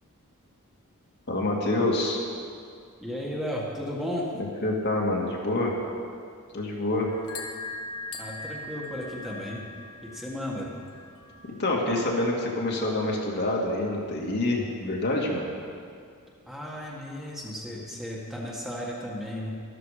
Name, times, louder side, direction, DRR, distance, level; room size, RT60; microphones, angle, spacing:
voice 1, 1.3-2.2 4.6-5.7 6.5-7.1 11.6-15.4, left 2 dB, 50° left, -2 dB, 2.0 m, -26 dB
voice 2, 3.0-4.3 8.2-9.6 10.0-10.7 16.5-19.5, equal, ahead, -4 dB, 1.8 m, -34 dB
sound 1, 7.1-12.1, left 3 dB, 75° left, 1.4 m, -41 dB
13.0 x 13.0 x 5.0 m, 2.3 s
head